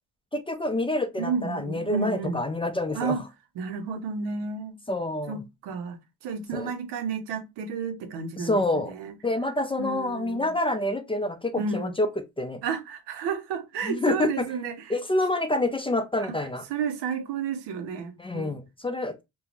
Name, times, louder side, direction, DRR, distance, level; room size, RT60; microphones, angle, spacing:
voice 1, 0.3-3.2 4.9-5.4 6.5-6.7 8.4-8.9 9.2-12.1 12.4-12.6 13.8-14.5 14.9-16.6 18.2-19.2, left 2 dB, 15° left, 0.4 m, -27 dB
voice 2, 1.2-2.4 2.9-3.2 3.6-4.8 5.3-9.2 9.8-10.5 11.6-11.9 12.6-15.0 16.2-16.4 16.7-18.5, right 5 dB, 90° right, 0.7 m, -32 dB
2.6 x 2.3 x 2.9 m
cardioid pair, 75°, 40 cm